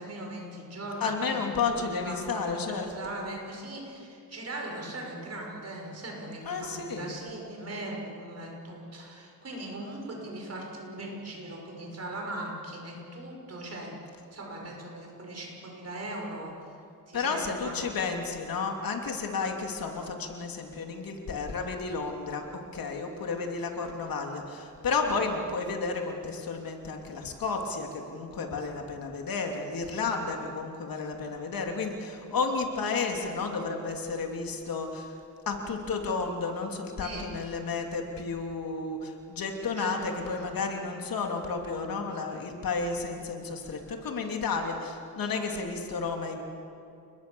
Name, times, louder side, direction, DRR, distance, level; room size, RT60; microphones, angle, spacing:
voice 1, 0.0-14.0 14.3-16.7 17.1-17.7 37.0-37.3 39.6-40.5, right 1 dB, 45° right, 0 dB, 6.1 m, -39 dB
voice 2, 1.0-3.2 6.4-7.1 17.1-22.5 22.7-35.1 35.5-46.4, left 4 dB, 70° left, 3 dB, 3.1 m, -32 dB
29.5 x 21.0 x 7.1 m, 2.5 s
wide cardioid pair, 135°, 36 cm